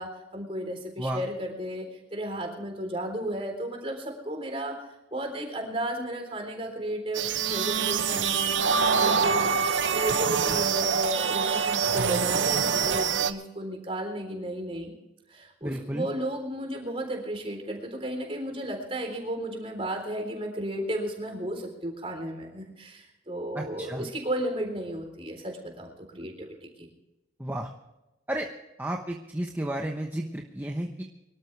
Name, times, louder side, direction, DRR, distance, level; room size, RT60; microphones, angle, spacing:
voice 1, 0.0-4.8 5.1-9.5 9.9-14.9 15.3-26.7, right 1 dB, 30° right, 3 dB, 3.8 m, -34 dB
sound 1, 7.1-13.3, right 6 dB, 85° right, 0.9 m, -25 dB
voice 2, 15.6-16.1 23.5-24.1 27.4-27.7 28.3-28.5 28.8-31.0, right 1 dB, 10° right, 1 dB, 1.0 m, -32 dB
24.0 x 13.0 x 3.4 m, 0.94 s
head